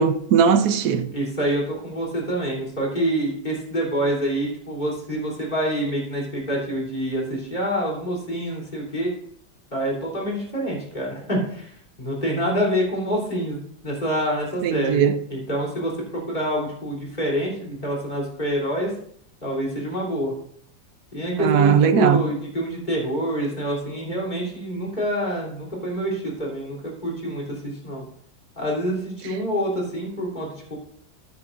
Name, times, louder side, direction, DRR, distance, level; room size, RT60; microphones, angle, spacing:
voice 1, 0.0-1.1 14.6-15.2 21.4-22.2, right 7 dB, 65° right, 1.1 m, -18 dB
voice 2, 1.1-9.1 9.7-15.0 15.3-15.9 16.3-18.9 19.4-20.3 21.1-28.0 28.6-30.8, equal, 25° left, 3.5 m, -26 dB
13.5 x 9.6 x 2.6 m
omnidirectional pair, 1.9 m